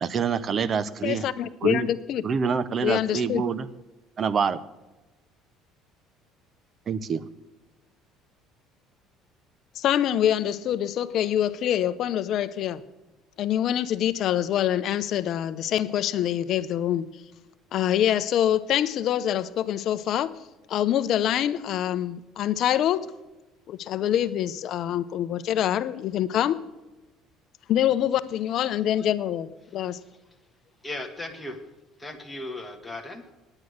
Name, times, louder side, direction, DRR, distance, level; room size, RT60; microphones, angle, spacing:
voice 1, 0.0-1.3 1.6-1.9 2.2-3.7 4.2-4.6 6.9-7.2, right 6 dB, 35° right, 17 dB, 0.6 m, -26 dB
voice 2, 1.0-2.2 2.8-3.4 9.8-12.8 13.4-17.1 17.7-20.3 20.7-23.1 23.7-26.6 27.7-30.0, left 11 dB, 55° left, 13 dB, 0.6 m, -25 dB
voice 3, 30.8-31.6 32.0-33.2, left 1 dB, 10° left, 3 dB, 1.4 m, -36 dB
9.7 x 9.1 x 6.4 m, 1.1 s
cardioid pair, 125°, 0 cm